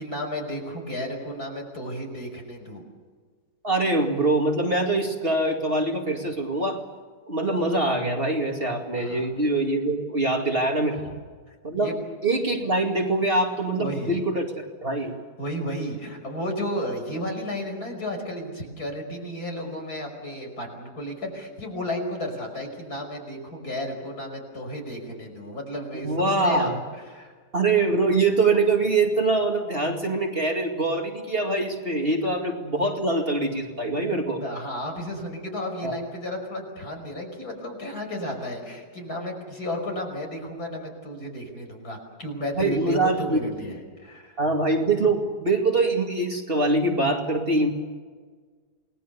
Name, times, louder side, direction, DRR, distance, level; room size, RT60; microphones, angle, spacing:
voice 1, 0.0-2.8 9.0-9.3 11.5-11.9 13.8-14.2 15.4-26.8 27.1-27.3 34.4-44.4, equal, 60° left, 3 dB, 6.0 m, -33 dB
voice 2, 3.6-6.8 7.3-11.0 11.6-11.9 12.2-15.1 26.0-26.8 27.5-34.4 35.8-36.0 42.6-43.4 44.4-47.7, right 2 dB, 35° right, 2 dB, 2.5 m, -24 dB
29.0 x 20.0 x 6.9 m, 1.5 s
omnidirectional pair, 1.8 m